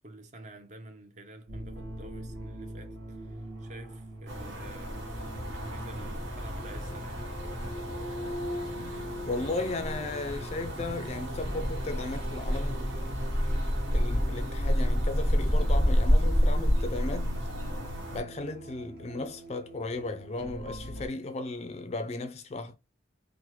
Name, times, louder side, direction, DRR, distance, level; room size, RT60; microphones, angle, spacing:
voice 1, 0.0-5.1 5.4-7.2, right 1 dB, 40° right, 0.6 m, -48 dB
sound 1, 1.5-21.1, equal, 55° right, 1.2 m, -42 dB
sound 2, 4.3-18.2, equal, 85° right, 1.1 m, -29 dB
voice 2, 9.3-13.1 13.6-17.3 18.1-22.8, left 2 dB, 35° left, 0.3 m, -36 dB
3.1 x 2.1 x 2.9 m
head